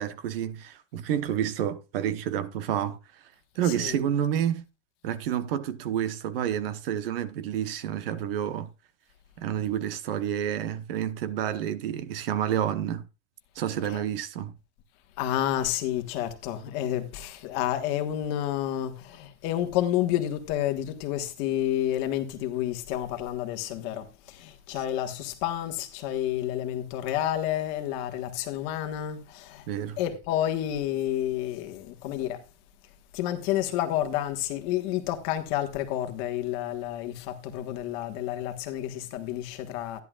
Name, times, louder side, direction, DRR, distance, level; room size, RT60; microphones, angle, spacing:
voice 1, 0.0-3.0 3.6-4.6 5.0-8.7 9.4-13.1 13.6-14.5 24.7-24.8 29.7-30.0, right 10 dB, 55° right, 1.1 m, -29 dB
voice 2, 3.6-4.0 13.8-14.0 15.2-29.6 30.0-32.4 33.1-40.0, left 12 dB, 40° left, 1.4 m, -30 dB
13.0 x 11.0 x 2.4 m
supercardioid pair, 170°, 34 cm